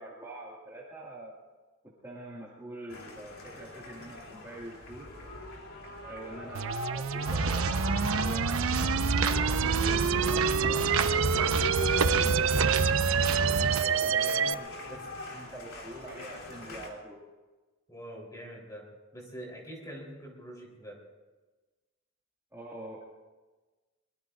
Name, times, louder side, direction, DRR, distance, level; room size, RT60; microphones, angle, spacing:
voice 1, 0.0-1.3 1.8-5.1 6.0-11.7 12.0-12.9 13.7-14.7 15.3-17.2 22.5-23.0, right 1 dB, 15° right, -6 dB, 2.2 m, -45 dB
sound 1, 2.9-16.9, left 1 dB, 80° left, 3.3 m, -39 dB
sound 2, 6.5-14.5, right 8 dB, 70° right, 0.4 m, -28 dB
sound 3, 7.3-13.8, right 3 dB, 90° right, 1.0 m, -29 dB
voice 2, 13.7-14.6 14.8-15.0 17.9-18.9 19.1-21.0, equal, 15° left, -1 dB, 4.0 m, -45 dB
23.5 x 22.5 x 2.6 m, 1.2 s
head